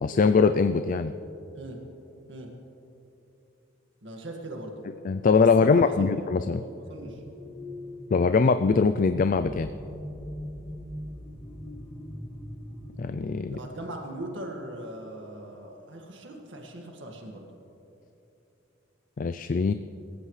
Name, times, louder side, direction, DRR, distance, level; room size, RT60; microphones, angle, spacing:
voice 1, 0.0-1.1 5.0-6.6 8.1-9.7 13.0-13.6 19.2-19.7, left 5 dB, 45° left, 10 dB, 0.4 m, -22 dB
voice 2, 4.0-4.8 5.6-6.1 6.4-6.6 6.9-7.2 13.5-17.5, right 1 dB, 70° right, 1 dB, 1.9 m, -40 dB
sound 1, 7.0-13.3, left 1 dB, 20° left, 2.4 m, -41 dB
26.0 x 15.5 x 3.3 m, 2.9 s
head